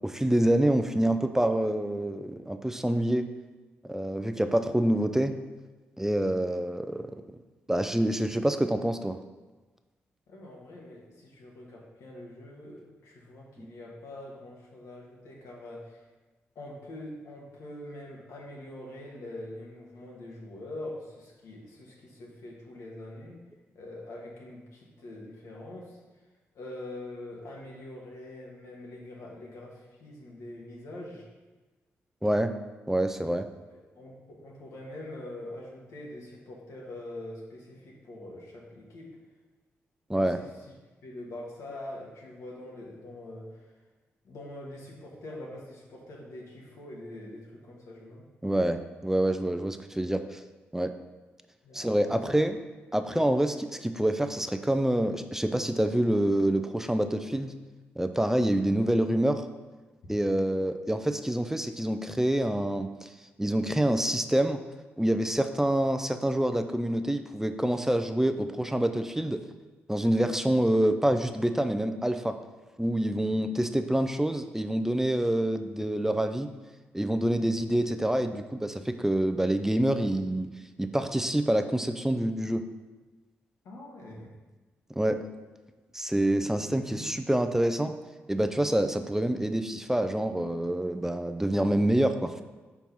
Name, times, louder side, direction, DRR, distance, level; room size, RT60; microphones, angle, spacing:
voice 1, 0.0-3.3 3.9-5.4 6.0-7.2 7.7-9.2 13.6-13.7 32.2-32.5 32.9-33.5 40.1-40.4 48.4-50.4 50.7-50.9 51.7-52.6 52.9-57.5 58.0-59.4 60.1-63.1 63.4-64.6 65.0-69.4 69.9-72.3 72.8-76.5 76.9-80.5 80.8-82.6 84.9-85.2 85.9-87.9 88.3-92.3, right 1 dB, 10° right, 8 dB, 0.5 m, -26 dB
voice 2, 10.3-16.1 16.5-23.4 23.7-26.2 26.5-31.3 33.7-39.2 40.1-40.7 41.0-43.8 44.2-48.2 51.6-52.2 53.1-53.4 58.6-58.7 83.6-84.3 86.4-87.1, left 1 dB, 70° left, -2 dB, 1.4 m, -44 dB
4.7 x 4.4 x 5.5 m, 1.2 s
hypercardioid pair, 45°, 5 cm